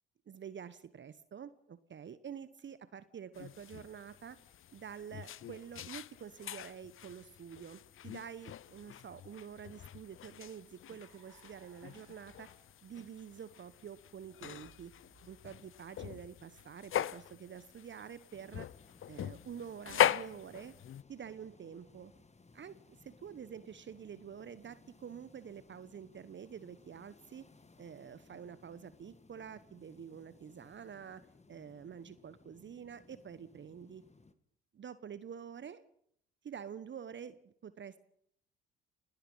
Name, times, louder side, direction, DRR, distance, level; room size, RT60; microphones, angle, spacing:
voice 1, 0.3-4.4 4.7-12.5 12.8-14.9 15.3-18.7 19.1-20.7 21.1-22.1 22.5-27.4 27.8-31.2 31.5-34.0 34.7-35.8 36.4-38.0, right 8 dB, 40° right, 14 dB, 1.1 m, -48 dB
sound 1, 3.3-21.0, left 11 dB, 45° left, 0.7 m, -40 dB
Car, 10.5-17.3, right 3 dB, 75° right, 6.5 m, -68 dB
sound 2, 18.3-34.3, left 3 dB, 25° left, 2.0 m, -62 dB
29.0 x 17.5 x 5.6 m, 0.70 s
hypercardioid pair, 50°, 29 cm